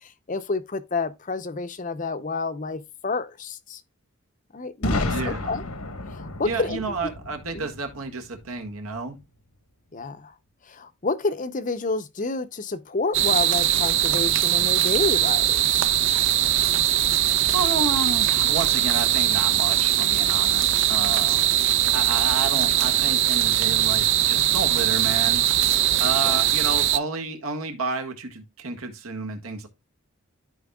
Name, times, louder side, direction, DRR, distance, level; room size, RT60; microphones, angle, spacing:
voice 1, 0.0-3.8 4.5-5.6 6.1-7.1 7.5-7.7 9.9-10.3 10.7-15.8 26.2-26.4, left 3 dB, 35° left, 0.6 m, -29 dB
Boom, 4.8-8.7, left 2 dB, 85° left, 1.3 m, -31 dB
voice 2, 5.1-5.5 6.4-9.2 17.5-21.4 21.9-25.4 26.0-29.7, right 3 dB, 80° right, 1.7 m, -31 dB
sound 1, 13.1-27.0, right 12 dB, 55° right, 0.5 m, -21 dB
13.5 x 4.5 x 2.3 m
head